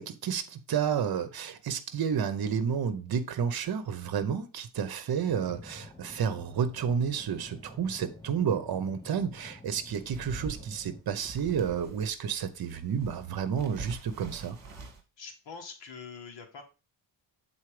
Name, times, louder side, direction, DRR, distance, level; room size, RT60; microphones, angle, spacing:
voice 1, 0.0-14.6, right 7 dB, 50° right, 1.0 m, -31 dB
sound 1, 5.3-11.0, left 3 dB, 10° left, 0.4 m, -49 dB
sound 2, 9.9-12.1 12.5-15.0, right 4 dB, 35° right, 1.7 m, -44 dB
voice 2, 15.2-16.6, left 5 dB, 65° left, 1.8 m, -44 dB
7.3 x 4.2 x 4.9 m
wide cardioid pair, 150°, 46 cm